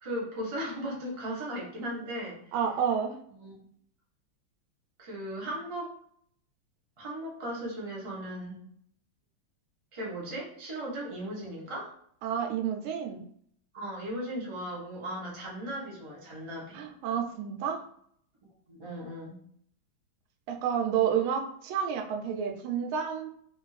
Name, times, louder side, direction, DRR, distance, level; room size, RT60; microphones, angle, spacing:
voice 1, 0.0-2.4 3.4-3.6 5.0-5.9 7.0-8.6 9.9-11.9 13.7-16.8 18.7-19.4, right 1 dB, 50° right, -5 dB, 0.3 m, -37 dB
voice 2, 2.5-3.2 12.2-13.3 16.7-17.8 20.5-23.3, right 8 dB, 85° right, 4 dB, 1.4 m, -30 dB
3.4 x 2.4 x 3.1 m, 0.65 s
omnidirectional pair, 2.3 m